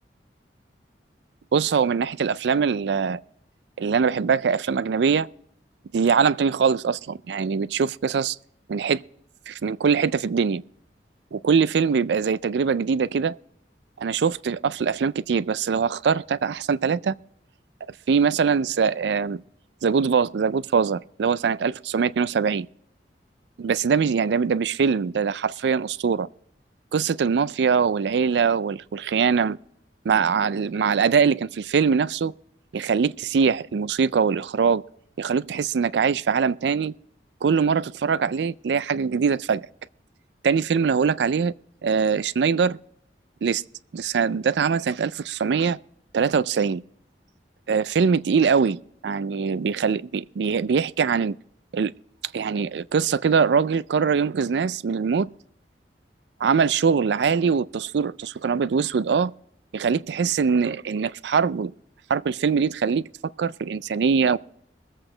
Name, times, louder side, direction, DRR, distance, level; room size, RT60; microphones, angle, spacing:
voice 1, 1.5-3.2 3.8-5.3 5.9-8.4 8.7-9.0 9.5-10.6 11.3-13.4 14.0-17.1 18.1-19.4 19.8-22.7 23.6-26.3 26.9-29.6 30.1-32.3 32.7-34.8 35.2-36.9 37.4-39.7 40.4-41.5 41.8-42.8 43.4-43.6 43.9-45.8 46.1-46.8 47.7-51.4 51.7-51.9 52.3-55.3 56.4-59.3 59.7-61.7 62.1-63.0 63.4-64.4, right 6 dB, 75° right, 0.4 m, -22 dB
22.0 x 8.0 x 3.8 m
head